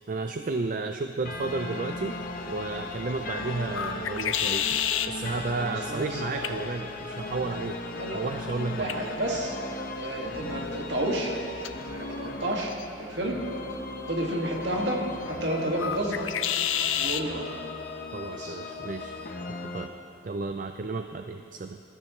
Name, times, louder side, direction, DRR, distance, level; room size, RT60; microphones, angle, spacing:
voice 1, 0.1-2.2 2.5-7.8 8.1-8.9 18.1-19.2 19.6-19.9 20.2-21.8, right 3 dB, 40° right, 6 dB, 0.4 m, -32 dB
sound 1, 1.3-19.9, left 2 dB, 45° left, 0.9 m, -37 dB
sound 2, 1.9-17.3, left 9 dB, 75° left, 0.5 m, -35 dB
voice 2, 5.6-6.2 7.9-8.2 8.7-9.6 10.0-11.3 11.9-12.7 13.0-13.4 14.1-15.0 15.3-16.2 17.0-17.4 18.3-18.6, right 1 dB, 60° right, -1 dB, 2.1 m, -31 dB
21.5 x 13.5 x 3.2 m, 2.6 s
head